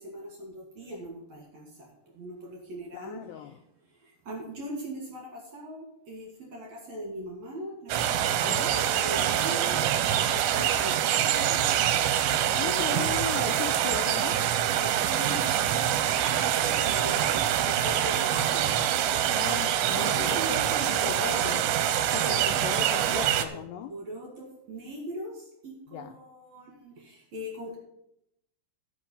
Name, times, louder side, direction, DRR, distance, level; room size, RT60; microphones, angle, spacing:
voice 1, 0.0-3.6 3.9-11.9 12.2-13.3 14.8-17.3 17.6-18.9 20.0-21.1 22.2-22.4 22.7-22.9 23.5-23.6 23.9-27.8, equal, 50° right, -1 dB, 2.3 m, -41 dB
voice 2, 2.9-3.6 8.4-8.7 12.6-14.4 19.3-20.6 20.9-21.6 22.1-23.9 25.9-26.1, left 10 dB, 85° left, 5 dB, 2.4 m, -37 dB
sound 1, 7.9-23.5, right 10 dB, 80° right, 2.7 m, -25 dB
14.0 x 5.5 x 5.4 m, 0.80 s
omnidirectional pair, 5.3 m